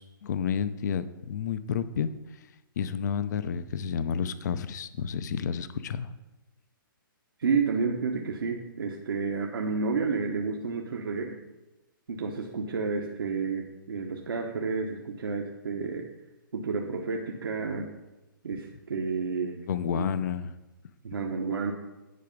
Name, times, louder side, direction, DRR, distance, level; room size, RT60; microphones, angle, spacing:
voice 1, 0.0-2.1 2.8-6.1 19.7-20.5, left 7 dB, 55° left, 13 dB, 0.6 m, -30 dB
voice 2, 7.4-11.4 12.1-16.1 16.5-17.9 18.4-19.6 19.9-20.1 21.0-21.7, right 4 dB, 85° right, 1 dB, 1.1 m, -30 dB
10.0 x 4.7 x 5.3 m, 1.1 s
hypercardioid pair, 155°, 12 cm